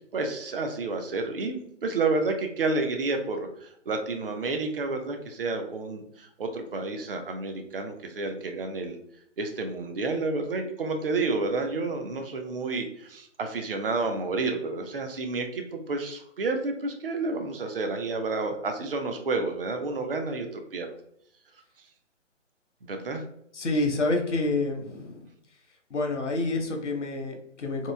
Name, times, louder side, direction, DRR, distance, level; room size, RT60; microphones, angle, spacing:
voice 1, 0.1-9.0 9.4-20.9 22.8-23.2, right 3 dB, 50° right, 5 dB, 0.5 m, -30 dB
voice 2, 23.5-25.3 25.9-27.9, left 2 dB, 65° left, 3 dB, 0.7 m, -28 dB
2.9 x 2.4 x 2.2 m, 0.71 s
figure-of-eight pair, 140°, 38 cm